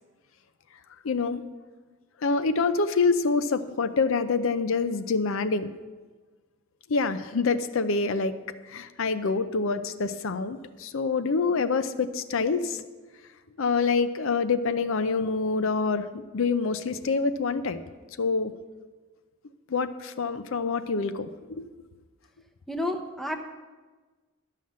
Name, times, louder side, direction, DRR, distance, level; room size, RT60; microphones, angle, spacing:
voice 1, 1.0-1.4 2.2-5.7 6.9-8.4 8.7-12.8 13.6-17.8 18.2-18.5 19.7-21.6, left 4 dB, 70° left, 10 dB, 0.5 m, -26 dB
voice 2, 22.7-23.4, left 1 dB, ahead, 4 dB, 0.7 m, -30 dB
12.0 x 5.7 x 7.4 m, 1.3 s
head